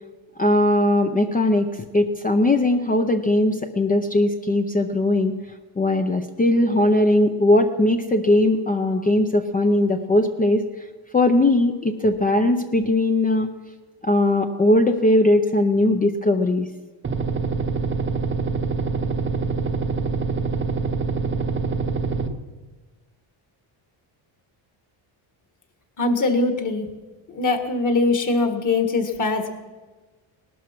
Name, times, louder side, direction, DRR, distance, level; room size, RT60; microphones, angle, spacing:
voice 1, 0.4-5.4 5.8-10.6 11.1-13.5 14.0-16.7, left 1 dB, 15° left, 5 dB, 0.6 m, -19 dB
sound 1, 17.0-22.3, right 4 dB, 25° right, 0.9 m, -25 dB
voice 2, 26.0-26.9 27.3-29.5, left 3 dB, 35° left, 6 dB, 1.7 m, -22 dB
18.5 x 12.5 x 6.0 m, 1.3 s
cardioid pair, 140°, 50 cm